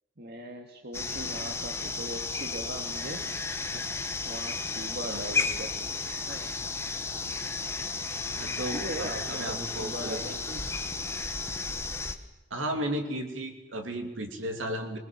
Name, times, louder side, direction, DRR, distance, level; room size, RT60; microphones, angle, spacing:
voice 1, 0.2-3.3 4.2-6.5 8.7-10.7, right 1 dB, 55° right, 3 dB, 1.9 m, -40 dB
sound 1, 0.9-12.2, left 4 dB, 15° left, 1.4 m, -33 dB
voice 2, 5.1-5.4 8.2-10.3 12.5-15.0, right 1 dB, 80° right, 4 dB, 2.7 m, -35 dB
25.0 x 21.0 x 7.4 m, 1.0 s
head